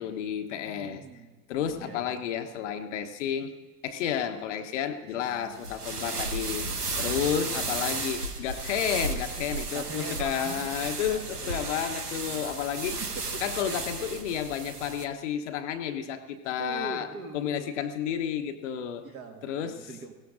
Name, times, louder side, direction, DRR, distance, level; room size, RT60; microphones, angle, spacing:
voice 1, 0.0-1.0 1.5-3.5 3.8-6.7 7.0-13.0 13.4-17.1 17.3-19.1 19.4-19.8, left 9 dB, 50° left, 8 dB, 1.0 m, -31 dB
voice 2, 0.5-1.3 1.7-2.2 5.2-5.7 7.2-7.7 9.7-10.7 11.1-11.7 12.1-12.5 13.0-13.5 16.6-17.8 19.0-20.1, right 4 dB, 30° right, 6 dB, 1.7 m, -42 dB
sound 1, 5.5-15.1, right 3 dB, 85° right, 1.1 m, -34 dB
21.0 x 17.0 x 2.6 m, 1.3 s
figure-of-eight pair, 85°, 45 cm